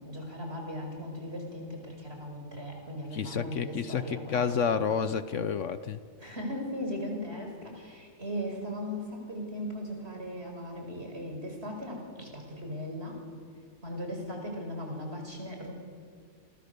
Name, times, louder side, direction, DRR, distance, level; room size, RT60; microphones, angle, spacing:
voice 1, 0.0-4.8 6.2-13.2 13.8-15.7, equal, 45° right, 2 dB, 5.4 m, -38 dB
voice 2, 3.1-6.0, left 6 dB, 60° left, 12 dB, 1.1 m, -30 dB
29.0 x 24.5 x 6.9 m, 2.1 s
omnidirectional pair, 1.5 m